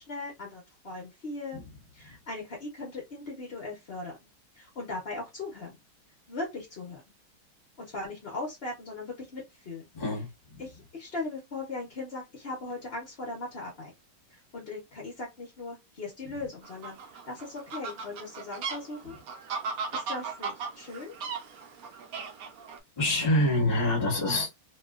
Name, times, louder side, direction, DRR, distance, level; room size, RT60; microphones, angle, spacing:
voice 1, 0.0-1.6 1.9-4.2 4.5-5.8 6.3-7.0 7.8-9.9 10.6-13.9 14.3-17.0 17.3-19.2 19.9-21.2, left 3 dB, 60° left, 0.6 m, -39 dB
voice 2, 9.9-10.6 23.0-24.5, left 1 dB, 25° left, 0.9 m, -26 dB
Fowl, 16.6-22.8, right 5 dB, 85° right, 0.7 m, -37 dB
2.9 x 2.7 x 2.3 m
omnidirectional pair, 2.3 m